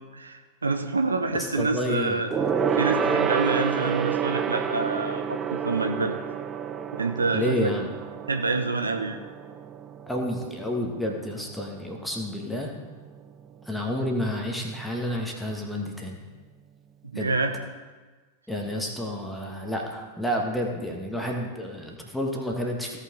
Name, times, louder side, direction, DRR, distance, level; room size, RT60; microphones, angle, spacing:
voice 1, 0.1-2.3 2.7-6.1 6.9-7.7 8.3-9.2 17.1-17.5, right 3 dB, 75° right, 6 dB, 0.7 m, -27 dB
voice 2, 1.3-2.2 7.3-7.9 10.1-12.7 13.6-16.2 17.1-17.3 18.5-23.0, left 1 dB, 5° left, 0 dB, 1.7 m, -30 dB
Gong, 2.3-12.1 12.4-12.6 12.9-13.0, right 7 dB, 20° right, 0.5 m, -29 dB
16.5 x 5.8 x 3.9 m, 1.3 s
figure-of-eight pair, 90°, 0 cm